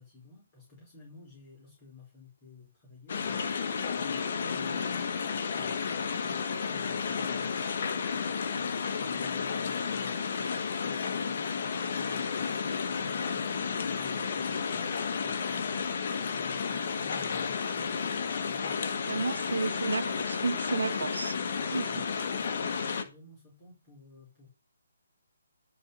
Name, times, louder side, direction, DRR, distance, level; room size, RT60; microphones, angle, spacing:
voice 1, 0.0-8.1 8.9-19.5 20.9-24.5, left 3 dB, 30° left, 4.9 m, -54 dB
sound 1, 3.1-23.0, left 6 dB, 50° left, 1.5 m, -32 dB
voice 2, 19.1-21.3 21.7-21.9, right 3 dB, 80° right, 1.0 m, -32 dB
12.0 x 4.4 x 6.9 m
hypercardioid pair, 150°, 0 cm